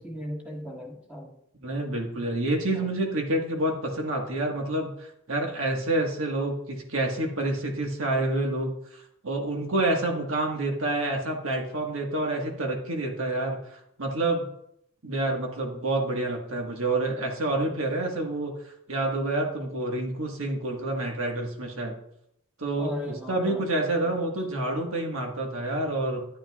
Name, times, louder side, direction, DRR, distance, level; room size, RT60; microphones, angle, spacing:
voice 1, 0.0-1.4 2.7-2.9 22.8-24.2, equal, 5° right, -1 dB, 1.6 m, -38 dB
voice 2, 1.6-14.5 15.0-18.5 18.9-21.9 22.6-26.3, right 2 dB, 75° right, 1 dB, 1.6 m, -28 dB
11.5 x 8.8 x 2.4 m, 0.73 s
head